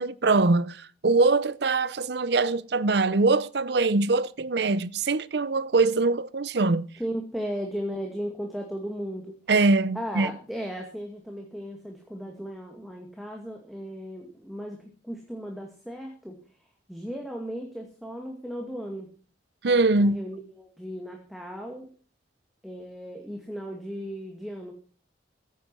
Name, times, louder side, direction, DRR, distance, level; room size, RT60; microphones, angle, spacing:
voice 1, 0.0-6.9 9.5-10.3 19.6-20.2, right 3 dB, 60° right, 0.7 m, -23 dB
voice 2, 7.0-9.3 9.9-14.8 15.0-16.4 16.9-19.1 20.0-21.9 22.6-24.7, equal, ahead, 2.2 m, -36 dB
16.0 x 9.3 x 6.2 m
head